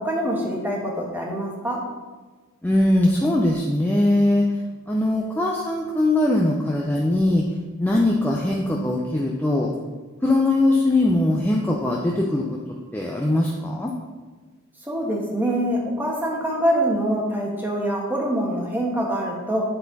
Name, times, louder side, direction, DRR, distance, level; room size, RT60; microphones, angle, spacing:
voice 1, 0.0-1.8 14.8-19.6, right 1 dB, 10° right, -2 dB, 1.2 m, -24 dB
voice 2, 2.6-4.6 4.9-7.4 7.8-9.7 10.2-12.6 12.9-13.9, left 1 dB, 10° left, -2 dB, 0.5 m, -21 dB
9.9 x 4.3 x 4.0 m, 1.3 s
head